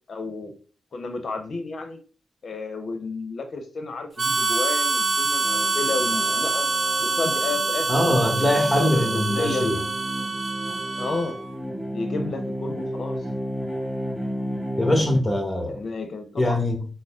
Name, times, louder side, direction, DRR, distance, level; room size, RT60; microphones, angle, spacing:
voice 1, 0.1-0.5 0.9-2.0 2.4-6.7 7.0-8.3 8.8-9.7 11.0-11.4 11.9-13.2 15.7-16.6, left 3 dB, 65° left, 0.8 m, -31 dB
Harmonica, 4.2-11.5, right 4 dB, 55° right, 0.6 m, -25 dB
sound 1, 5.4-15.2, equal, ahead, 1.3 m, -33 dB
voice 2, 7.9-9.8 14.8-15.8 16.4-16.9, left 1 dB, 20° left, 1.3 m, -22 dB
3.9 x 2.1 x 3.5 m
supercardioid pair, 45°, 0 cm